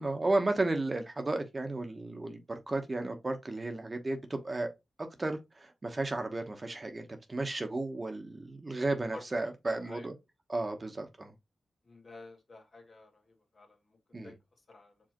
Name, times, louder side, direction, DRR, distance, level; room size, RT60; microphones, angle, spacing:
voice 1, 0.0-4.7 5.0-10.1 10.5-11.3 14.1-14.3, right 2 dB, 35° right, 1.0 m, -33 dB
voice 2, 9.1-10.1 11.8-14.3 14.7-14.9, left 2 dB, 60° left, 1.6 m, -52 dB
5.1 x 3.2 x 3.0 m
supercardioid pair, 40°, 0 cm